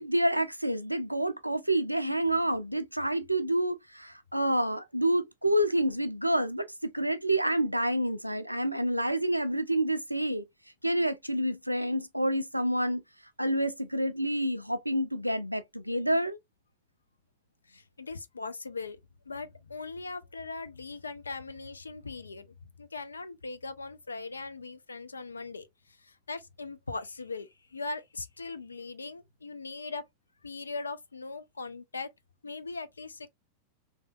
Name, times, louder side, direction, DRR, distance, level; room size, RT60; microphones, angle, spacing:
voice 1, 0.0-10.4 10.8-13.0 13.4-16.4, right 1 dB, 90° right, 0.4 m, -28 dB
voice 2, 17.7-19.0 19.3-25.7 26.0-30.0 30.4-32.1 32.4-33.3, left 3 dB, 75° left, 0.4 m, -40 dB
3.3 x 2.7 x 2.3 m
figure-of-eight pair, 90°, 0 cm